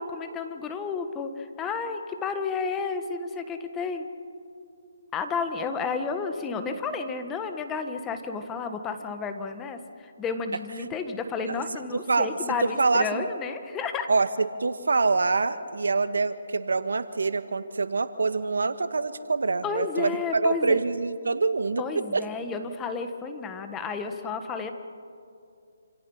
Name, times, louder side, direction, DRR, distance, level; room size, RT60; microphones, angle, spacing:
voice 1, 0.0-4.1 5.1-14.1 19.6-20.8 21.8-24.7, left 5 dB, 15° left, 7 dB, 1.5 m, -32 dB
voice 2, 12.8-13.2 14.1-22.2, right 4 dB, 80° right, 11 dB, 1.5 m, -25 dB
28.0 x 27.0 x 5.7 m, 2.5 s
hypercardioid pair, 155°, 0 cm